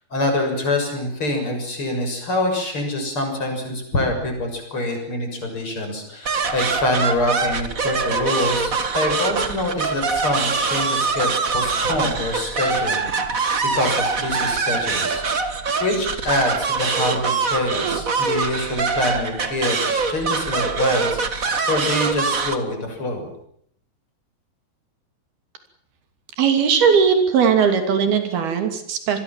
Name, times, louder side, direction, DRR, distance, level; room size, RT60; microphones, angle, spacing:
voice 1, 0.1-15.2 15.8-23.3, left 1 dB, 35° left, 4 dB, 7.5 m, -25 dB
sound 1, 6.2-22.6, right 4 dB, 35° right, 1.3 m, -23 dB
voice 2, 26.4-29.2, right 6 dB, 85° right, 7 dB, 4.8 m, -18 dB
27.5 x 21.0 x 7.5 m, 0.68 s
omnidirectional pair, 4.3 m